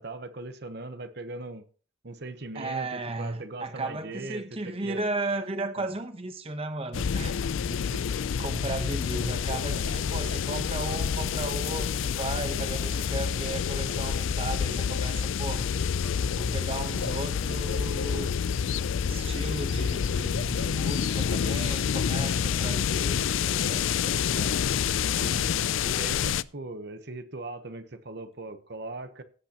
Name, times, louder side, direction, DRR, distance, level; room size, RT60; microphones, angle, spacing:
voice 1, 0.0-1.6 2.0-5.0 5.8-5.9 7.6-8.1 9.6-9.9 25.2-29.2, right 2 dB, 55° right, 0.9 m, -40 dB
voice 2, 2.5-7.4 7.9-15.7 16.3-18.3 19.1-25.0, right 2 dB, 30° right, 0.9 m, -35 dB
sound 1, 6.9-26.4, left 7 dB, 80° left, 0.4 m, -28 dB
16.5 x 8.4 x 2.9 m
head